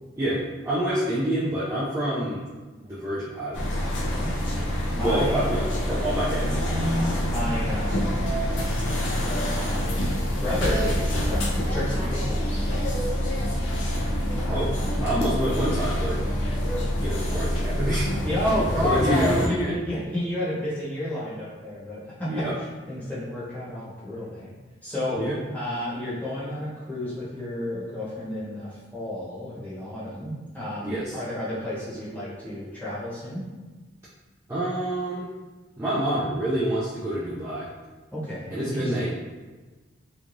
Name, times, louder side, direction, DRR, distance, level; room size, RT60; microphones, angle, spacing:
voice 1, 0.2-2.5 2.8-3.8 5.0-6.7 14.5-14.7 15.0-16.2 17.0-18.1 18.8-19.7 22.3-22.5 25.2-25.4 30.8-31.1 34.5-35.3 35.8-37.7 38.5-39.1, right 1 dB, 15° right, -10 dB, 0.3 m, -27 dB
sound 1, 3.5-19.5, equal, 80° left, 0.5 m, -26 dB
voice 2, 4.1-5.5 7.3-8.4 9.4-12.8 14.4-15.0 18.2-24.5 24.8-25.2 25.5-33.5 38.1-38.9, left 1 dB, 10° left, -10 dB, 0.9 m, -31 dB
3.1 x 2.3 x 2.5 m, 1.3 s
head